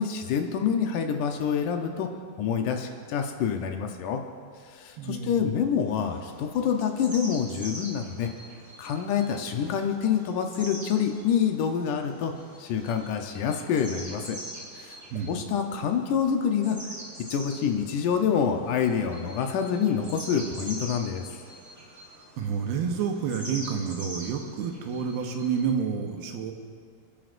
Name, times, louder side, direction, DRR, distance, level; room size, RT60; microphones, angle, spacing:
voice 1, 0.0-2.1 2.4-4.2 4.7-8.3 8.8-12.3 12.6-14.4 14.8-15.0 15.3-16.9 17.3-21.3, left 7 dB, 75° left, 4 dB, 2.0 m, -27 dB
voice 2, 5.0-5.4 15.1-15.3 22.4-26.5, right 6 dB, 80° right, 4 dB, 2.9 m, -29 dB
sound 1, 5.9-25.6, equal, 15° right, 3.4 m, -44 dB
29.0 x 10.5 x 2.6 m, 2.2 s
omnidirectional pair, 4.4 m